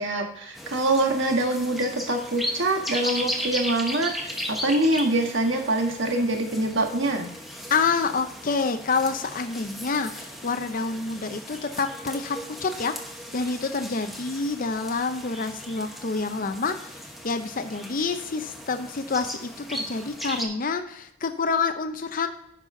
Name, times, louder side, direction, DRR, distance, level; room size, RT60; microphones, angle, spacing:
voice 1, 0.0-7.3, right 2 dB, 60° right, 3 dB, 1.5 m, -25 dB
sound 1, 0.5-20.5, equal, ahead, 1.0 m, -36 dB
voice 2, 7.7-12.9 13.3-17.0 17.2-22.3, left 4 dB, 40° left, 7 dB, 0.6 m, -27 dB
9.9 x 5.7 x 3.7 m, 0.74 s
head